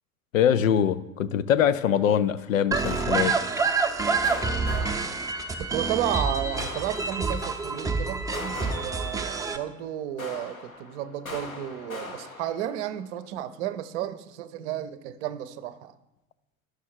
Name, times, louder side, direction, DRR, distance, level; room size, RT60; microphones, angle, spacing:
voice 1, 0.3-3.7, left 9 dB, 70° left, 14 dB, 0.6 m, -23 dB
sound 1, 2.0-2.4 2.8-3.9 4.2-5.8 6.6-7.7 8.3-9.8 10.2-13.1, left 2 dB, 90° left, 1.1 m, -41 dB
sound 2, 2.7-9.6, right 4 dB, 10° right, 0.7 m, -27 dB
voice 2, 5.6-15.9, right 11 dB, 55° right, 13 dB, 0.7 m, -32 dB
11.5 x 6.3 x 4.4 m, 0.97 s
figure-of-eight pair, 70°, 41 cm